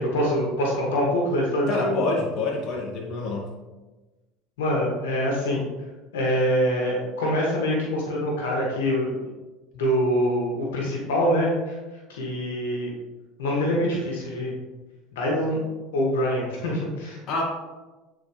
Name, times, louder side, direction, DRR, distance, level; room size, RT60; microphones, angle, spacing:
voice 1, 0.0-2.0 4.6-5.6 6.1-9.2 9.7-11.8 12.1-12.9 13.4-14.5 15.1-15.6 15.9-17.2, equal, 80° left, -3 dB, 1.9 m, -24 dB
voice 2, 1.7-3.5 17.3-17.4, left 3 dB, 50° left, -1 dB, 1.9 m, -26 dB
9.1 x 4.7 x 3.2 m, 1.1 s
hypercardioid pair, 85°, 0 cm